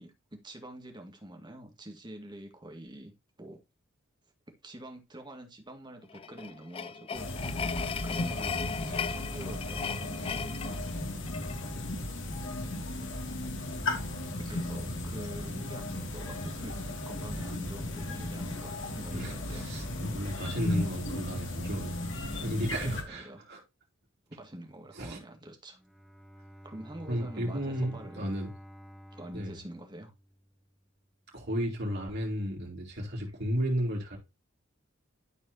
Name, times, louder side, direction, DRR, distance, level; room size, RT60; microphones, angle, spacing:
voice 1, 0.0-3.1 3.4-3.6 4.6-7.3 8.0-10.8 14.4-19.7 22.8-23.4 24.3-25.8 26.6-28.3 29.1-30.1, right 1 dB, 20° right, 1.9 m, -46 dB
sound 1, 6.1-11.6, left 6 dB, 25° left, 0.3 m, -37 dB
sound 2, 7.1-23.0, left 1 dB, 65° left, 2.3 m, -35 dB
voice 2, 19.1-23.6 25.0-25.2 27.1-28.5 29.3-29.5 31.3-34.2, equal, 55° right, 3.6 m, -33 dB
Bowed string instrument, 25.7-30.7, equal, 5° left, 1.8 m, -51 dB
12.5 x 4.7 x 2.8 m
head